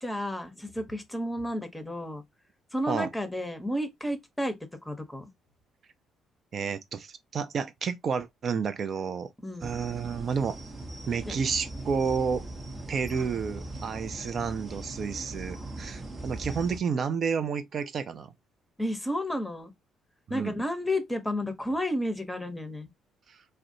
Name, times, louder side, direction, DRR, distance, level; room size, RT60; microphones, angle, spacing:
voice 1, 0.0-2.2 2.7-4.5 4.8-5.3 9.4-9.7 11.2-11.3 13.1-13.5 18.8-19.7 20.3-22.9, left 1 dB, 10° left, 0.8 m, -32 dB
voice 2, 6.5-9.3 9.6-10.6 11.1-12.4 12.9-18.3 20.3-20.5 23.3-23.4, right 6 dB, 50° right, 0.4 m, -30 dB
sound 1, 9.6-16.8, right 2 dB, 35° right, 0.8 m, -40 dB
2.4 x 2.1 x 2.7 m
hypercardioid pair, 50°, 0 cm